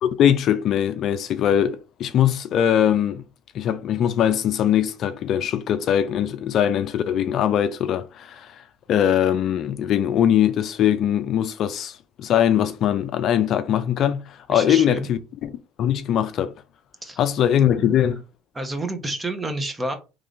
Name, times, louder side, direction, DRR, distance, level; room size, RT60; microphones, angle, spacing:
voice 1, 0.0-3.2 3.5-8.6 8.9-16.5 17.2-18.2, left 10 dB, 55° left, 0.4 m, -21 dB
voice 2, 14.5-15.1 17.0-17.2 17.7-18.0 18.5-20.0, right 2 dB, 15° right, 0.9 m, -29 dB
3.7 x 3.1 x 2.5 m
supercardioid pair, 90°, 0 cm